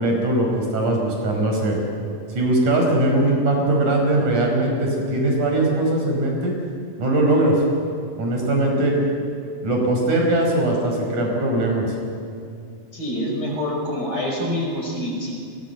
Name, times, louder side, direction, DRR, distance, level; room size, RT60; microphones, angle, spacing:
voice 1, 0.0-1.8 2.4-6.5 7.0-7.6 8.2-8.9 9.6-11.9, right 1 dB, 80° right, 1 dB, 6.8 m, -20 dB
voice 2, 12.9-15.4, left 1 dB, 30° left, 0 dB, 5.9 m, -26 dB
29.0 x 23.5 x 7.0 m, 2.3 s
omnidirectional pair, 3.4 m